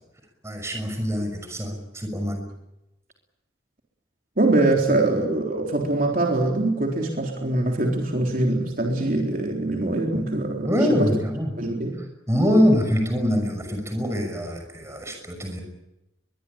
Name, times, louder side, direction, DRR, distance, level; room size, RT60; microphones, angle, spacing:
voice 1, 0.4-2.5 10.6-11.5 12.3-15.6, equal, 15° right, 5 dB, 6.0 m, -24 dB
voice 2, 4.4-10.7 11.0-11.1 11.6-12.0, right 2 dB, 50° right, 1 dB, 3.8 m, -23 dB
23.0 x 22.0 x 8.7 m, 0.92 s
head